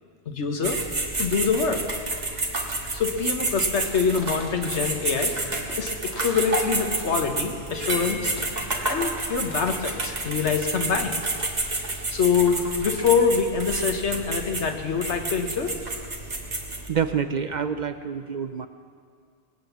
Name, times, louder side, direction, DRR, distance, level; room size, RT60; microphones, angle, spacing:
voice 1, 0.3-0.8 1.2-1.8 2.9-5.3 5.8-8.3 8.8-11.2 12.1-15.7, left 6 dB, 85° left, 5 dB, 1.5 m, -25 dB
sound 1, 0.6-16.9, right 2 dB, 40° right, 1.6 m, -30 dB
sound 2, 3.8-9.7 9.9-10.0, left 2 dB, 70° left, 2.3 m, -43 dB
voice 2, 16.9-18.7, right 7 dB, 55° right, 9 dB, 0.5 m, -27 dB
20.0 x 9.0 x 7.2 m, 2.2 s
omnidirectional pair, 1.1 m